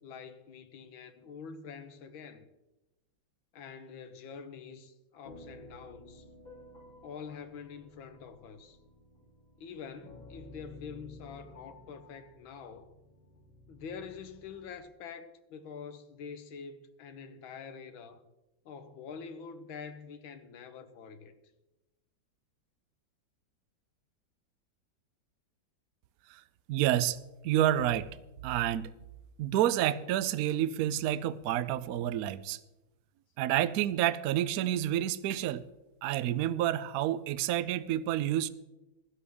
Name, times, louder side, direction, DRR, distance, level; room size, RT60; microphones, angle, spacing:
voice 1, 0.0-2.5 3.5-6.3 7.0-8.8 9.6-12.9 13.7-18.2 18.7-21.3, left 6 dB, 85° left, 1.7 m, -46 dB
sound 1, 5.2-14.8, left 2 dB, 45° left, 3.9 m, -54 dB
voice 2, 26.7-28.1 28.4-28.9 29.4-32.6 33.4-35.6 36.0-38.5, right 12 dB, 80° right, 0.8 m, -29 dB
16.0 x 12.5 x 3.5 m
omnidirectional pair, 2.1 m